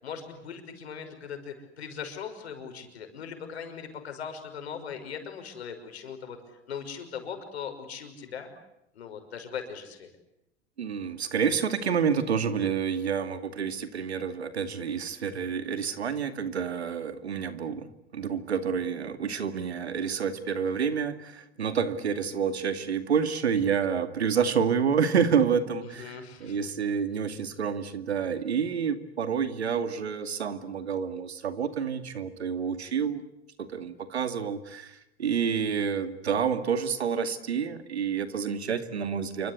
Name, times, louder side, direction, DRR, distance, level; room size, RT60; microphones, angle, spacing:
voice 1, 0.0-6.4 6.7-8.5 8.9-10.1 25.8-26.6, left 7 dB, 85° left, 6 dB, 6.0 m, -39 dB
voice 2, 10.8-17.9 18.1-33.2 33.6-39.5, right 7 dB, 90° right, 10 dB, 2.4 m, -28 dB
28.5 x 25.0 x 8.3 m, 0.83 s
hypercardioid pair, 90°, 32 cm